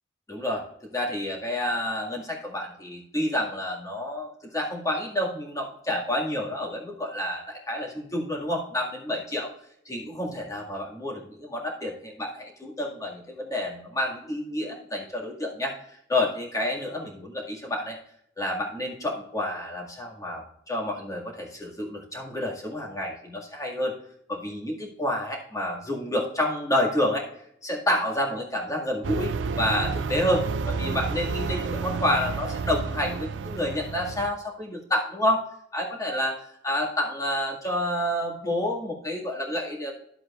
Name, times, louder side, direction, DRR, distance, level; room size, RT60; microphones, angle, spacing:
voice 1, 0.3-0.6 0.9-9.5 9.9-18.0 18.4-23.9 24.3-27.3 27.6-35.5 35.7-40.0, left 1 dB, 20° left, -2 dB, 1.9 m, -29 dB
sound 1, 29.0-34.3, right 4 dB, 85° right, 0.4 m, -30 dB
11.5 x 7.7 x 2.4 m, 0.71 s
head